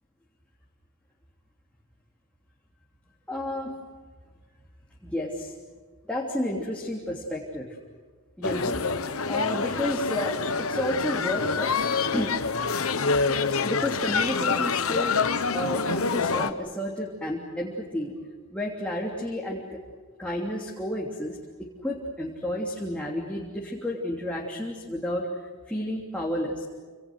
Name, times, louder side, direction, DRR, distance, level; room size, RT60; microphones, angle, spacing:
voice 1, 3.3-3.7 5.0-5.5 6.1-7.8 8.4-8.8 9.3-11.7 12.1-12.4 13.6-18.1 18.5-19.8 20.2-25.3 25.7-26.7, left 1 dB, 5° left, -4 dB, 3.2 m, -31 dB
sound 1, 8.4-16.5, left 5 dB, 70° left, 1.2 m, -26 dB
29.0 x 27.5 x 6.5 m, 1.5 s
head